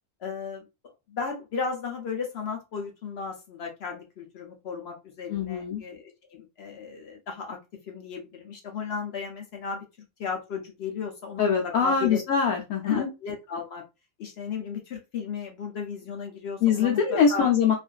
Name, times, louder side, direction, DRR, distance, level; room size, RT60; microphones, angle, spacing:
voice 1, 0.2-7.6 7.8-9.8 10.2-12.2 12.8-13.8 14.2-17.5, left 6 dB, 65° left, 2 dB, 0.7 m, -35 dB
voice 2, 5.3-5.8 11.4-13.1 16.6-17.7, left 6 dB, 80° left, -1 dB, 1.0 m, -23 dB
2.4 x 2.4 x 2.2 m, 0.26 s
omnidirectional pair, 1.4 m